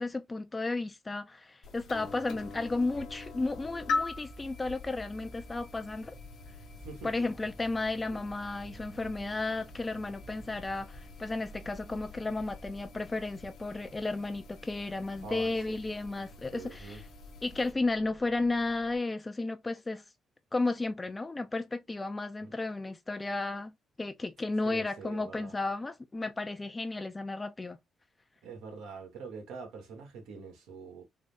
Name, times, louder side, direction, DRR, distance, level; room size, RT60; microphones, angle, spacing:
voice 1, 0.0-6.2 7.0-17.0 17.4-20.0 20.5-27.8, left 2 dB, 20° left, 0.4 m, -33 dB
sound 1, 1.6-17.7, left 4 dB, 70° left, 0.9 m, -43 dB
sound 2, 2.4-19.0, right 1 dB, 50° right, 1.0 m, -53 dB
voice 2, 6.7-7.1 8.1-8.2 15.2-15.8 16.5-17.0 22.4-22.5 24.6-25.5 28.4-31.0, right 5 dB, 90° right, 1.3 m, -44 dB
3.7 x 2.0 x 3.3 m
cardioid pair, 90°, 0 cm